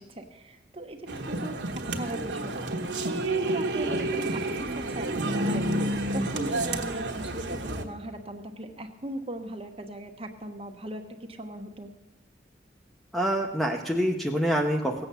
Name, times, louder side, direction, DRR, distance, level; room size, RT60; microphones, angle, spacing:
voice 1, 0.0-2.7 3.1-11.9, right 1 dB, 30° right, 4 dB, 1.1 m, -39 dB
sound 1, 1.1-7.8, right 1 dB, 70° right, 1.2 m, -29 dB
voice 2, 13.1-15.1, equal, ahead, 2 dB, 0.7 m, -26 dB
17.5 x 7.9 x 6.8 m, 1.1 s
head